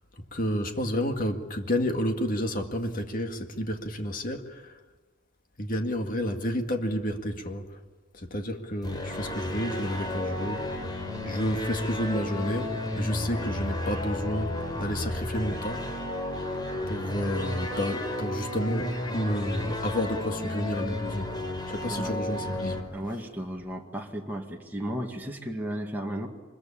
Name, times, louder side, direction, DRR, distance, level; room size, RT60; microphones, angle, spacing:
voice 1, 0.3-4.7 5.6-7.8 8.1-10.8 11.2-15.9 16.9-21.4 21.7-22.9, equal, 45° left, 2.1 m, -30 dB
sound 1, 8.8-22.8, left 1 dB, 20° left, 3.6 m, -33 dB
voice 2, 21.8-22.1 22.9-26.3, equal, 10° right, 2.2 m, -34 dB
24.5 x 22.0 x 8.7 m
head